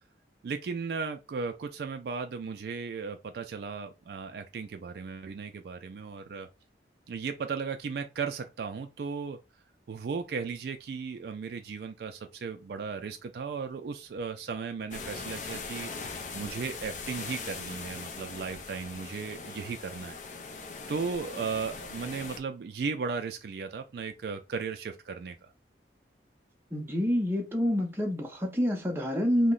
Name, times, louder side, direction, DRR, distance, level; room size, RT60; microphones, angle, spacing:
voice 1, 0.4-6.5 7.1-9.4 9.9-20.1 20.9-25.4, right 5 dB, 55° right, 0.3 m, -36 dB
sound 1, 14.9-22.4, left 4 dB, 40° left, 0.4 m, -40 dB
voice 2, 26.7-29.5, equal, 10° right, 0.6 m, -27 dB
2.8 x 2.1 x 3.7 m
head